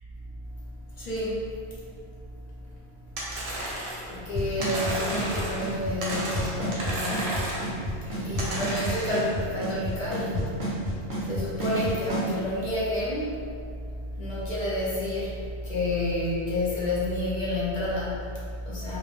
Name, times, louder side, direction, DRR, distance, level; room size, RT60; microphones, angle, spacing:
voice 1, 0.9-1.5 4.0-7.4 8.1-10.7 11.2-13.4 14.2-19.0, left 1 dB, 55° left, -7 dB, 0.5 m, -30 dB
sound 1, 3.2-4.1 4.6-5.7 6.0-7.7 8.4-9.3, right 1 dB, 85° right, 0.8 m, -33 dB
Drum kit / Snare drum / Bass drum, 4.3-12.3, equal, 40° right, 0.5 m, -30 dB
2.0 x 2.0 x 3.0 m, 2.2 s
omnidirectional pair, 1.1 m